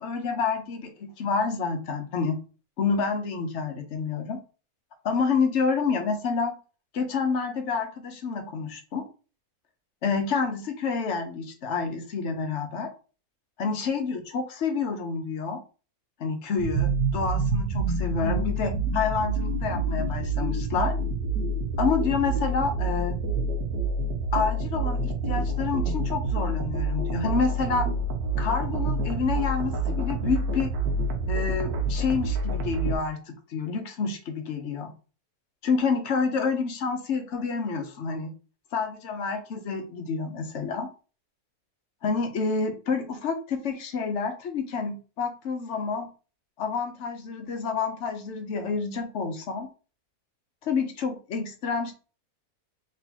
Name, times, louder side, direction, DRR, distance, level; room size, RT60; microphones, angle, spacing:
voice 1, 0.0-2.4 2.8-4.4 5.0-6.6 6.9-9.0 10.0-12.9 13.6-15.6 16.2-21.0 21.8-23.2 24.3-27.9 28.4-30.7 31.3-33.2 33.5-34.9 35.6-38.3 38.7-40.9 42.0-46.1 46.6-49.7 50.6-51.9, left 5 dB, 55° left, 6 dB, 0.9 m, -28 dB
sound 1, 16.6-33.0, right 2 dB, 85° right, 1.3 m, -27 dB
4.1 x 3.1 x 2.8 m, 0.36 s
omnidirectional pair, 1.6 m